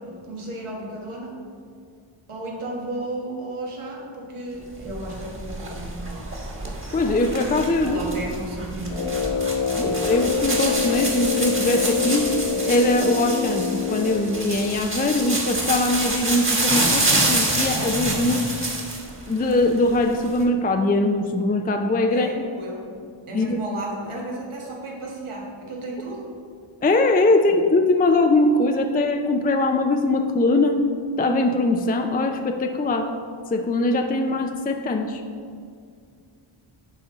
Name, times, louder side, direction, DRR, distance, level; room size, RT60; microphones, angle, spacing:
voice 1, 0.0-1.4 2.3-6.3 7.8-9.1 9.8-10.2 22.1-22.9 23.3-26.3, right 1 dB, 85° right, -2 dB, 1.6 m, -34 dB
sound 1, 4.8-19.1 19.4-20.4, right 2 dB, 25° right, 1.4 m, -27 dB
voice 2, 6.9-8.0 9.7-12.3 12.7-18.6 19.3-22.4 23.3-23.6 26.8-30.8 31.2-33.1 33.5-35.2, left 2 dB, 20° left, 5 dB, 0.4 m, -21 dB
Brass instrument, 8.8-14.5, left 6 dB, 90° left, 1.1 m, -26 dB
11.0 x 4.2 x 3.8 m, 2.2 s
wide cardioid pair, 75°, 49 cm